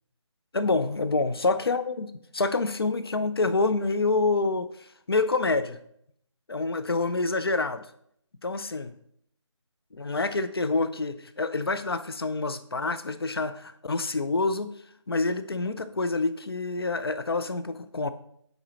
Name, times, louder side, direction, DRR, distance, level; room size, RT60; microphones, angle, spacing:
voice 1, 0.5-5.8 6.5-7.9 8.4-8.9 10.0-14.7 15.1-18.1, left 3 dB, 50° left, 12 dB, 0.4 m, -27 dB
8.9 x 3.9 x 3.0 m, 0.70 s
figure-of-eight pair, 180°, 16 cm